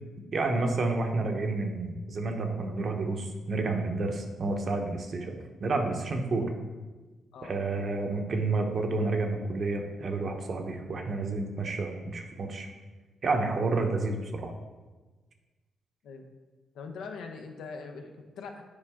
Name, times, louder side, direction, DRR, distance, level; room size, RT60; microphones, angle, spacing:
voice 1, 0.3-6.5 7.4-12.7 13.2-14.5, right 3 dB, 50° right, 3 dB, 0.9 m, -30 dB
voice 2, 16.7-18.6, left 4 dB, 85° left, 4 dB, 0.8 m, -42 dB
8.5 x 4.6 x 3.6 m, 1.3 s
cardioid pair, 80°, 0 cm